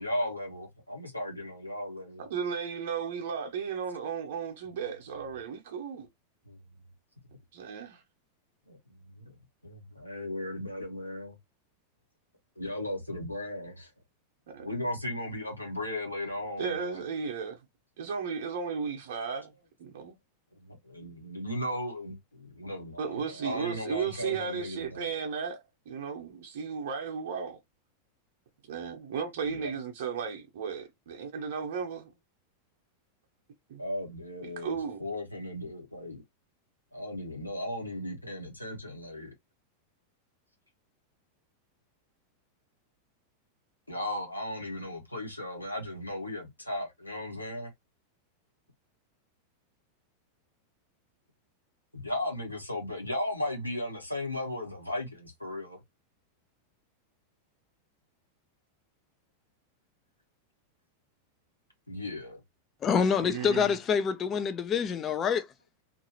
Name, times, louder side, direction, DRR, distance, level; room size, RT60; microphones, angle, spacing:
voice 1, 0.0-2.2 6.5-6.6 8.7-8.8 9.2-9.3 9.6-11.4 12.6-13.9 14.6-17.0 20.6-25.0 29.4-29.7 33.8-36.2 36.9-39.3 43.9-47.7 51.9-55.8 61.9-62.4, left 1 dB, 85° left, 1.1 m, -36 dB
voice 2, 2.2-6.1 7.5-8.0 14.5-14.7 16.6-17.6 18.0-19.5 19.8-20.2 23.0-27.6 28.6-32.1 33.7-33.8 34.4-35.1 63.2-63.8, right 6 dB, 55° right, 0.9 m, -35 dB
voice 3, 62.8-65.4, left 6 dB, 25° left, 0.6 m, -26 dB
2.8 x 2.6 x 2.8 m
figure-of-eight pair, 90°, 0 cm